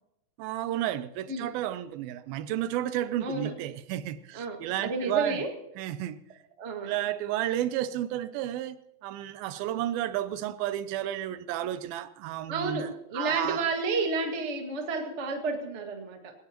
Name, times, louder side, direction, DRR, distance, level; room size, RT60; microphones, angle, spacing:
voice 1, 0.4-5.4 5.8-6.2 6.8-8.8 9.0-13.6, right 12 dB, 85° right, 2.4 m, -32 dB
voice 2, 3.2-3.5 4.3-5.5 6.6-6.9 12.5-16.3, right 3 dB, 35° right, 1.1 m, -31 dB
21.0 x 18.5 x 3.0 m
omnidirectional pair, 4.3 m